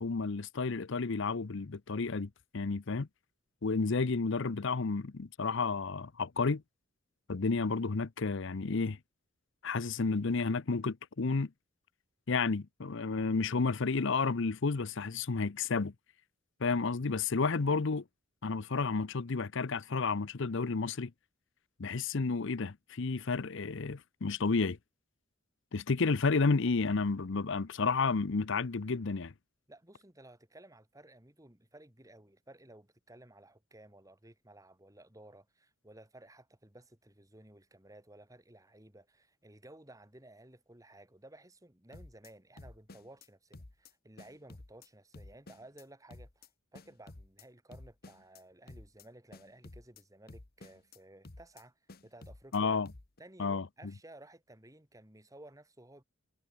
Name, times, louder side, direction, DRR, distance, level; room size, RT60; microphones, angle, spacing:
voice 1, 0.0-3.1 3.6-6.6 7.3-9.0 9.6-11.5 12.3-15.9 16.6-18.0 18.4-21.1 21.8-24.8 25.7-29.3 52.5-52.9 53.4-53.7, left 4 dB, 60° left, 0.7 m, -31 dB
voice 2, 29.7-52.7 53.2-56.0, right 1 dB, 15° right, 2.6 m, -56 dB
sound 1, 41.9-42.3 42.6-43.3 43.5-43.9 44.2-44.9 45.1-45.8 46.1-46.5 46.7-47.4 47.7-48.4 48.7-49.1 49.3-50.0 50.3-51.0 51.2-51.6 51.9-52.6 52.9-53.2, left 2 dB, 45° left, 1.3 m, -52 dB
head